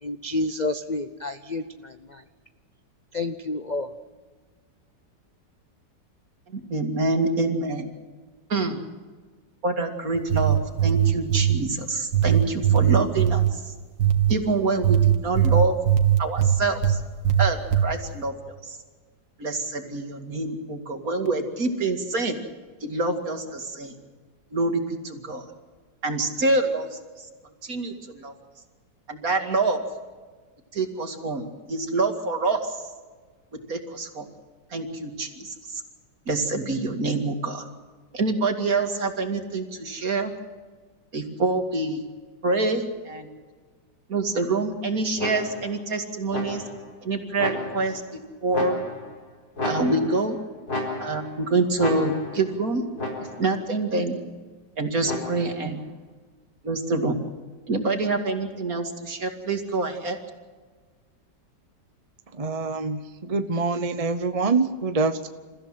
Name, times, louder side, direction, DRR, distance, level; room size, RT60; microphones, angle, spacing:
voice 1, 0.0-2.2 3.1-3.9, left 2 dB, 40° left, 9 dB, 0.6 m, -30 dB
voice 2, 6.5-7.9 8.5-8.8 9.6-13.6 14.3-15.8 16.2-17.0 17.4-18.3 18.6-18.8 19.4-22.4 22.8-23.9 24.5-25.4 26.0-27.3 27.6-28.3 29.1-29.8 30.7-32.8 33.7-34.3 34.7-35.8 36.3-37.6 38.1-40.3 41.1-42.0 42.4-43.3 44.1-46.6 47.0-48.8 49.6-50.4 51.0-52.8 53.4-54.2 54.8-55.8 56.6-57.1 57.7-60.2, right 3 dB, 50° right, 5 dB, 2.7 m, -26 dB
sound 1, 10.1-11.6 12.1-13.5 14.0-14.4 14.8-17.0 17.2-17.9, right 10 dB, 85° right, 2.3 m, -20 dB
sound 2, 45.2-45.8 46.3-46.9 47.4-48.0 48.5-49.2 49.6-50.3 50.7-51.4 51.8-52.5 53.0-53.6 55.0-55.7, left 2 dB, 60° left, 4.8 m, -32 dB
voice 3, 62.4-65.3, right 4 dB, 30° right, 9 dB, 0.7 m, -25 dB
28.5 x 15.0 x 7.6 m, 1.4 s
omnidirectional pair, 1.9 m